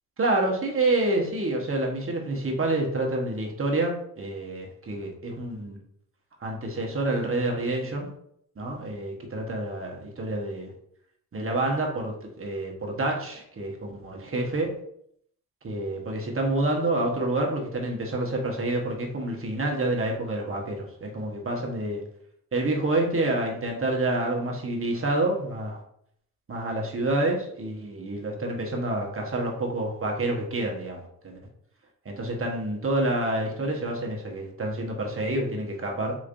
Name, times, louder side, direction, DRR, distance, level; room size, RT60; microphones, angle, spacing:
voice 1, 0.2-5.8 6.4-8.1 8.6-10.7 11.3-14.7 15.6-22.0 22.5-25.8 26.5-31.4 32.1-36.1, right 2 dB, 30° right, 0 dB, 1.2 m, -28 dB
4.0 x 3.1 x 2.6 m, 0.70 s
supercardioid pair, 55°, 42 cm